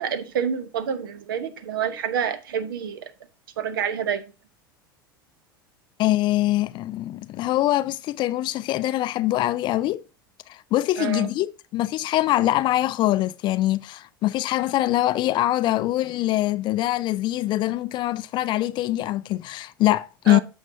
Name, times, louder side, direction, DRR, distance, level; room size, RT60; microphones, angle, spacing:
voice 1, 0.0-3.1 3.6-4.3 11.0-11.3 20.3-20.4, right 8 dB, 75° right, 0.9 m, -28 dB
voice 2, 6.0-10.0 10.5-20.4, left 15 dB, 40° left, 0.4 m, -23 dB
9.0 x 6.5 x 2.7 m
hypercardioid pair, 85°, 12 cm